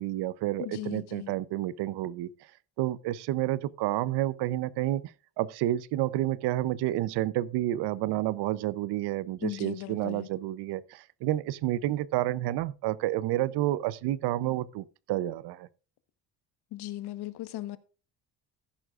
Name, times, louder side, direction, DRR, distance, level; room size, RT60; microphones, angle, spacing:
voice 1, 0.0-2.3 2.8-5.0 5.4-15.7, right 15 dB, 85° right, 0.7 m, -30 dB
voice 2, 0.6-1.3 9.4-10.3 16.7-17.8, left 15 dB, 80° left, 1.2 m, -37 dB
14.0 x 11.0 x 2.5 m
cardioid pair, 165°, 39 cm